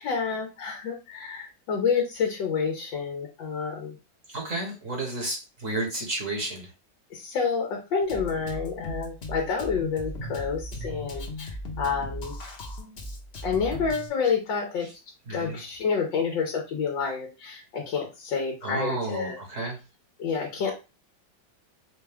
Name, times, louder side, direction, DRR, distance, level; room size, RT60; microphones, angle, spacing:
voice 1, 0.0-4.0 7.1-12.3 13.4-14.9 15.3-19.4 20.2-20.7, left 5 dB, 90° left, 1 dB, 1.6 m, -29 dB
voice 2, 4.3-6.7 14.8-14.9 15.3-15.6 18.6-19.8, right 2 dB, 45° right, 0 dB, 1.5 m, -32 dB
Drum kit, 8.1-14.1, left 1 dB, 45° left, 0.9 m, -37 dB
5.6 x 2.2 x 3.5 m, 0.28 s
omnidirectional pair, 2.0 m